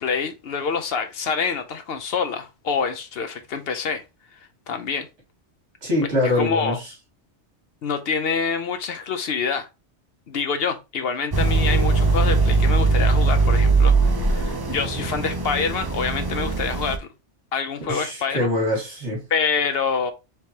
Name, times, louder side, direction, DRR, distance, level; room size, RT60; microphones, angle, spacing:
voice 1, 0.0-4.0 4.3-4.4 4.7-5.1 6.2-6.8 7.8-9.7 10.3-17.1 17.5-18.5 19.3-20.1, left 5 dB, 65° left, 0.8 m, -26 dB
voice 2, 5.8-6.8 17.9-19.2, left 1 dB, 75° right, 2.3 m, -23 dB
sound 1, 11.3-17.0, right 3 dB, 30° right, 0.4 m, -20 dB
4.4 x 3.2 x 2.8 m
omnidirectional pair, 1.2 m